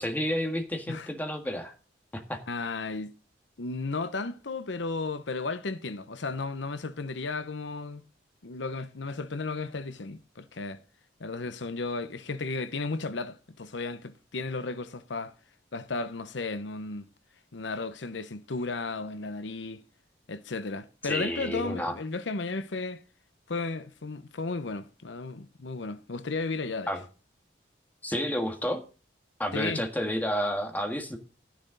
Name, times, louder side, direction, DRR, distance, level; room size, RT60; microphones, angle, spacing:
voice 1, 0.0-1.7 2.1-2.4 21.0-22.0 26.9-27.0 28.0-28.8 29.4-31.2, equal, 10° left, 1.7 m, -30 dB
voice 2, 2.5-3.1 3.6-8.0 8.4-10.8 11.2-15.3 15.7-17.1 17.5-19.8 20.3-23.0 23.5-26.9 29.5-29.8, left 3 dB, 80° left, 0.8 m, -34 dB
12.0 x 10.5 x 3.9 m
head